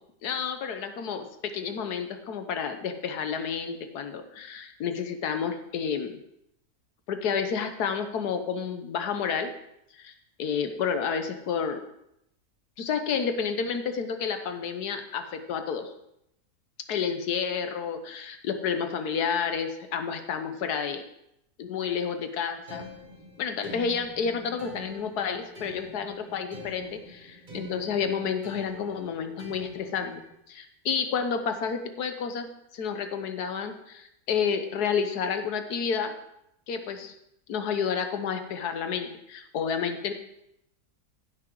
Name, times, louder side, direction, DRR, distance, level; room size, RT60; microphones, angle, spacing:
voice 1, 0.2-6.2 7.1-9.5 9.9-10.1 10.4-11.8 12.8-15.9 16.9-21.0 21.6-22.8 23.4-30.1 30.5-36.1 36.7-37.1 37.5-40.1, left 6 dB, 90° left, 7 dB, 1.5 m, -30 dB
sound 1, 22.7-30.4, right 1 dB, 30° right, 1.7 m, -45 dB
15.5 x 6.1 x 4.6 m, 0.80 s
omnidirectional pair, 1.6 m